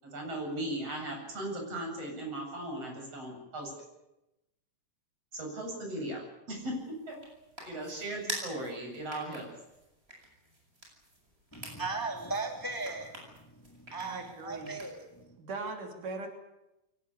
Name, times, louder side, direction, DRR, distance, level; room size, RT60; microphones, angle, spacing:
voice 1, 0.0-3.7 5.3-6.8 7.1-7.2 7.6-9.5, right 1 dB, 50° right, 1 dB, 8.9 m, -37 dB
sound 1, 6.5-15.2, right 1 dB, 20° right, 7.8 m, -47 dB
voice 2, 11.5-15.4, right 3 dB, 5° left, 3 dB, 2.7 m, -38 dB
voice 3, 14.0-14.8 15.4-16.3, right 3 dB, 85° right, 4 dB, 4.7 m, -39 dB
23.5 x 18.5 x 9.9 m, 0.94 s
omnidirectional pair, 3.5 m